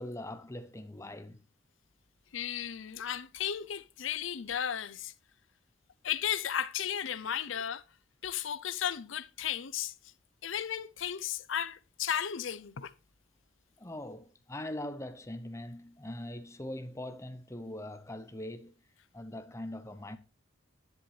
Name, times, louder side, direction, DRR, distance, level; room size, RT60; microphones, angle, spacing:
voice 1, 0.0-1.4 13.8-18.7 19.1-20.2, left 1 dB, 15° left, 0.8 m, -41 dB
voice 2, 2.3-5.1 6.0-7.8 8.2-9.9 10.4-12.9, left 9 dB, 70° left, 0.6 m, -34 dB
10.5 x 10.0 x 3.2 m
head